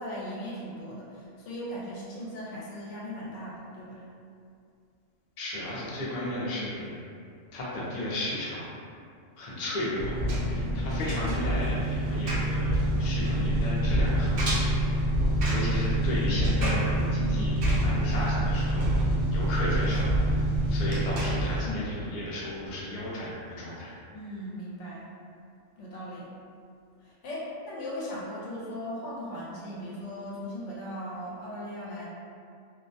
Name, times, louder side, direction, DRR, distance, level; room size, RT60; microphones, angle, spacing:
voice 1, 0.0-4.1 24.1-25.1 25.8-26.3 27.0-32.1, equal, 75° left, -6 dB, 0.9 m, -38 dB
voice 2, 5.4-7.0 7.5-8.7 9.4-15.0 15.5-19.0 19.3-23.9, left 1 dB, 50° left, -7 dB, 0.5 m, -34 dB
Engine, 10.0-21.6, right 1 dB, 60° right, 0.6 m, -26 dB
2.4 x 2.1 x 2.6 m, 2.4 s
omnidirectional pair, 1.3 m